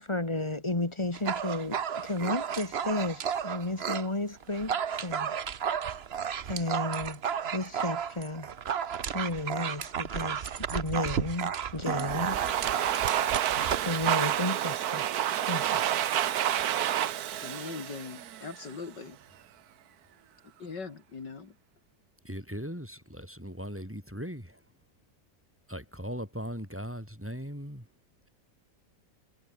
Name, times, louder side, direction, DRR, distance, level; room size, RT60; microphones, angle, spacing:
voice 1, 0.0-5.3 6.4-7.2 7.5-8.5 9.1-12.4 13.7-15.1 15.5-15.8, left 2 dB, 15° left, 2.0 m, -33 dB
Dog, 1.1-4.1 4.4-14.1, right 8 dB, 45° right, 0.9 m, -33 dB
Domestic sounds home sounds, 11.9-18.8, right 11 dB, 60° right, 1.3 m, -29 dB
voice 2, 17.4-19.2 20.6-21.6, left 5 dB, 70° left, 3.2 m, -41 dB
voice 3, 22.2-24.6 25.7-27.9, equal, 5° right, 6.8 m, -39 dB
omnidirectional pair, 2.0 m